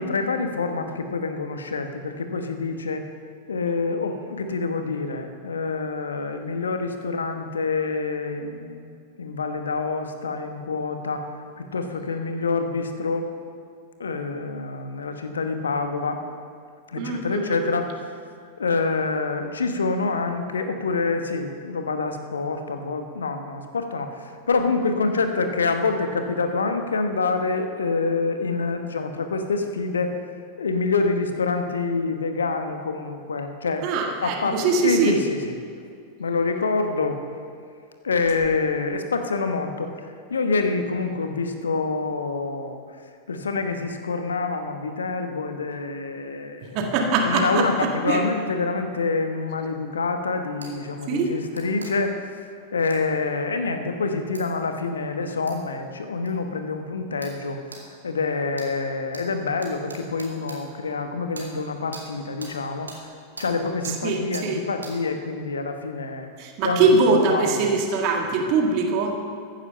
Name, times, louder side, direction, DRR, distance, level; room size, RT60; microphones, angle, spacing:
voice 1, 0.0-3.0 3.5-8.9 9.2-11.3 11.6-13.3 14.0-16.2 16.9-17.9 18.6-30.1 30.6-33.9 34.2-35.5 36.2-37.2 38.0-39.9 40.3-42.8 43.3-46.8 47.2-52.2 52.7-57.6 58.0-62.9 63.4-66.3 66.6-67.7, left 4 dB, 70° left, 7 dB, 1.1 m, -26 dB
voice 2, 17.0-17.7 33.8-35.1 46.7-47.7 48.1-48.2 51.1-51.3 64.0-64.6 66.4-69.1, right 4 dB, 45° right, 1 dB, 1.8 m, -22 dB
sound 1, 50.6-50.7 51.5-51.9 52.9-53.0 54.3-54.4 55.5-55.6 56.3-56.4 57.2-57.4 57.7-57.8 58.5-58.7 59.1-59.2 59.6-60.6 61.3-61.5 61.9-62.0 62.4-62.5 62.9-63.0 63.4-63.5 63.8-64.0 64.3-64.5 64.8-64.9, right 3 dB, 75° right, 2.2 m, -40 dB
15.0 x 10.5 x 5.7 m, 2.3 s
figure-of-eight pair, 90°, 0 cm